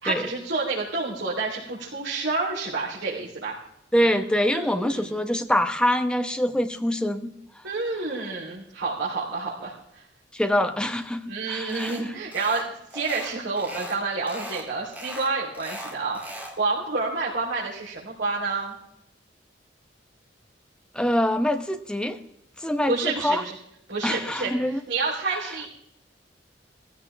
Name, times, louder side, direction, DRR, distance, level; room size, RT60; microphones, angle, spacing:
voice 1, 0.0-3.6 4.0-4.1 4.5-5.2 7.6-10.0 11.3-16.2 16.6-18.8 22.9-23.5 23.9-24.5 24.9-25.7, right 3 dB, 85° right, -7 dB, 3.8 m, -29 dB
voice 2, 3.9-7.3 10.3-11.9 20.9-22.2 22.6-23.4 24.0-24.8 25.3-25.4, left 1 dB, 5° left, 7 dB, 1.1 m, -24 dB
sound 1, 11.7-12.0 12.3-12.7 12.9-14.0 14.3-14.6 14.9-16.6, right 1 dB, 10° right, 2.9 m, -38 dB
18.0 x 15.5 x 3.5 m, 0.77 s
head